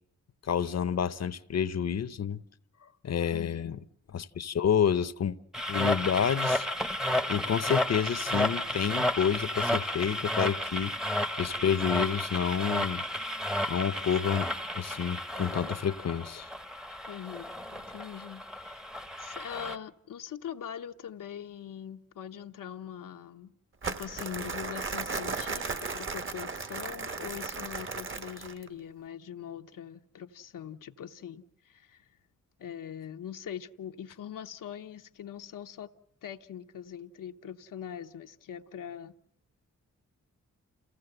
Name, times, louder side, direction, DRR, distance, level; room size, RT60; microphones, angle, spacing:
voice 1, 0.4-2.4 3.0-3.8 4.1-5.4 5.7-6.7 7.3-10.9 11.4-13.0 13.7-16.5, left 8 dB, 55° left, 0.8 m, -29 dB
voice 2, 3.3-3.8 17.1-18.8 19.2-23.5 23.8-32.1 32.6-35.9 36.2-39.1, left 9 dB, 85° left, 0.9 m, -42 dB
sound 1, 5.5-19.8, left 1 dB, ahead, 0.8 m, -32 dB
Crumpling crinkling, 23.8-28.7, right 4 dB, 40° right, 1.1 m, -36 dB
28.5 x 16.0 x 7.9 m
wide cardioid pair, 110°, 32 cm